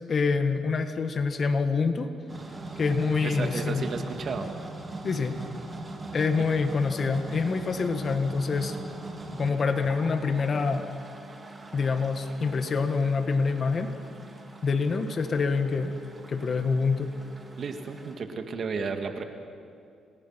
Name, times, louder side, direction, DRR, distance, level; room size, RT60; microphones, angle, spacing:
voice 1, 0.1-2.1 2.8-3.9 5.0-5.4 6.1-8.8 9.3-10.8 11.7-13.9 14.6-15.9 16.3-17.1, left 4 dB, 45° left, 8 dB, 1.7 m, -26 dB
sound 1, 2.3-18.1, right 2 dB, 25° right, 3.3 m, -41 dB
voice 2, 3.2-4.5 6.4-6.5 17.6-19.2, right 5 dB, 50° right, 6 dB, 2.2 m, -33 dB
27.5 x 20.0 x 5.9 m, 2.4 s
cardioid pair, 90°, 0 cm